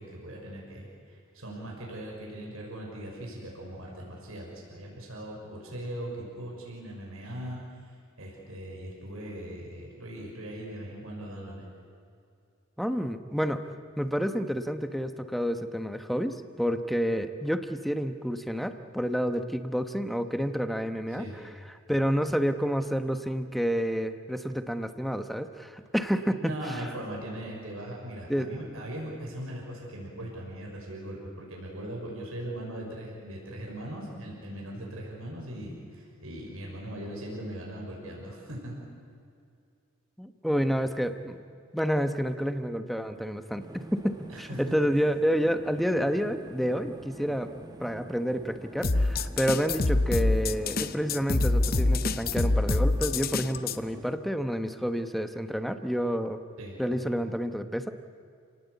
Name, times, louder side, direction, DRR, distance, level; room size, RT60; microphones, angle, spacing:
voice 1, 0.0-7.6 8.2-11.7 21.2-21.4 26.4-38.7 44.3-44.6 56.6-56.8, right 1 dB, 80° right, -2 dB, 6.1 m, -39 dB
voice 2, 12.8-21.3 21.7-26.8 28.3-28.5 40.2-41.4 41.7-47.5 47.8-56.4 56.8-57.9, equal, ahead, 8 dB, 1.1 m, -29 dB
sound 1, 43.6-54.2, right 1 dB, 20° right, 1.5 m, -46 dB
sound 2, 48.8-53.8, left 2 dB, 45° left, 0.8 m, -25 dB
30.0 x 18.5 x 8.3 m, 2.4 s
head